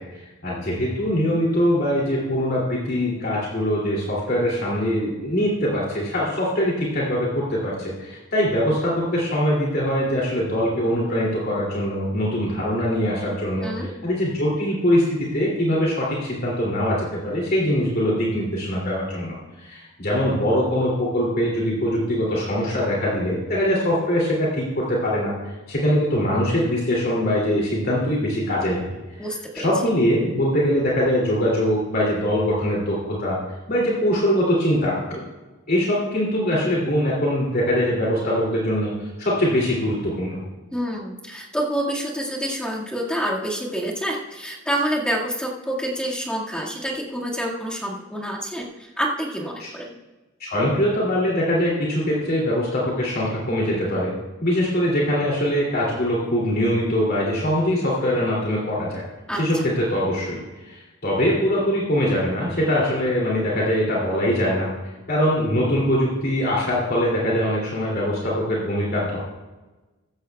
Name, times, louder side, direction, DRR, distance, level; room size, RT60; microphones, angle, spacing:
voice 1, 0.0-28.8 29.5-33.4 33.7-35.2 35.7-40.4 49.6-49.7 50.4-54.1 54.4-59.0 59.3-64.7 65.1-69.2, equal, 50° left, -5 dB, 2.7 m, -22 dB
voice 2, 29.2-29.7 40.7-50.0 59.3-59.4, equal, 5° left, -4 dB, 1.9 m, -27 dB
15.0 x 14.0 x 2.3 m, 1.2 s
head